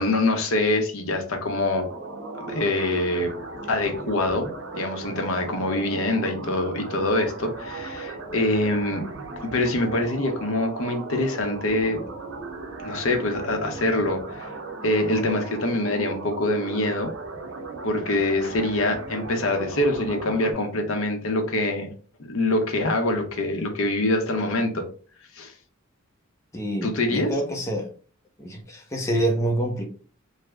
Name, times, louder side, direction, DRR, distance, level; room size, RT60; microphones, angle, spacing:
voice 1, 0.0-1.9 2.4-3.3 3.7-4.5 4.7-9.0 9.4-12.0 12.8-14.5 14.8-17.1 17.8-21.9 22.2-24.9 25.4-25.5 26.8-27.4, left 2 dB, 70° left, 0.7 m, -24 dB
sound 1, 1.7-20.5, right 3 dB, 60° right, 0.8 m, -37 dB
voice 2, 26.5-27.9 28.4-29.8, right 1 dB, 15° left, 0.5 m, -26 dB
3.2 x 2.0 x 3.4 m
head